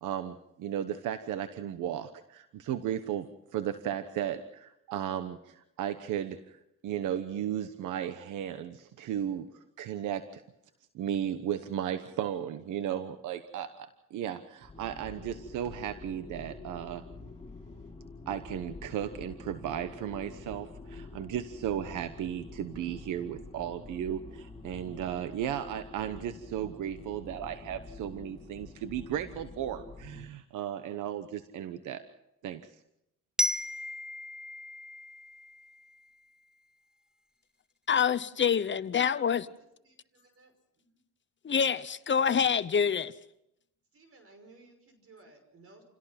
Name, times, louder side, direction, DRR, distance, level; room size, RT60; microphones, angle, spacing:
voice 1, 0.0-10.4 10.9-17.0 18.3-32.0 32.4-32.7, right 10 dB, 85° right, 10 dB, 1.1 m, -35 dB
sound 1, 14.6-30.3, left 3 dB, 20° left, 3.2 m, -47 dB
Glockenspiel, 33.4-36.2, equal, ahead, 0.7 m, -35 dB
voice 2, 37.9-39.5 41.4-43.1, left 7 dB, 40° left, 16 dB, 0.9 m, -26 dB
voice 3, 39.0-39.5 39.8-41.0 43.9-45.8, right 3 dB, 50° right, 7 dB, 5.8 m, -58 dB
28.5 x 17.5 x 5.9 m, 0.81 s
cardioid pair, 90°, 30 cm